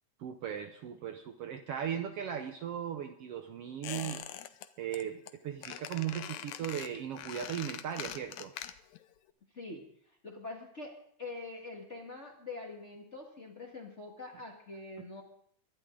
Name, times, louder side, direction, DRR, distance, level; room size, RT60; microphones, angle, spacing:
voice 1, 0.2-4.2 4.8-8.5 15.0-15.1, right 9 dB, 70° right, 6 dB, 1.6 m, -37 dB
Squeak, 3.8-4.7 4.9-5.3 5.6-9.0 9.3-9.4, left 11 dB, 75° left, 1.9 m, -43 dB
voice 2, 10.2-15.2, left 3 dB, 30° left, 1 dB, 1.6 m, -44 dB
24.0 x 12.0 x 3.8 m, 0.63 s
omnidirectional pair, 3.4 m